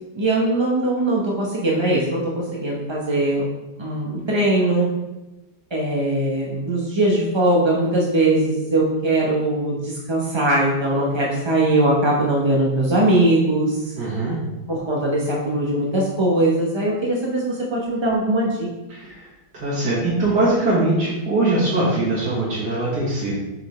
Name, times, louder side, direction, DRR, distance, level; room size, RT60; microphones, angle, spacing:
voice 1, 0.1-3.4 3.8-4.9 5.7-13.8 14.7-18.7, right 1 dB, 30° right, -3 dB, 0.5 m, -20 dB
voice 2, 14.0-14.4 18.9-19.3 19.5-23.4, right 2 dB, 70° right, -7 dB, 2.2 m, -21 dB
7.2 x 5.0 x 3.2 m, 1.0 s
omnidirectional pair, 1.9 m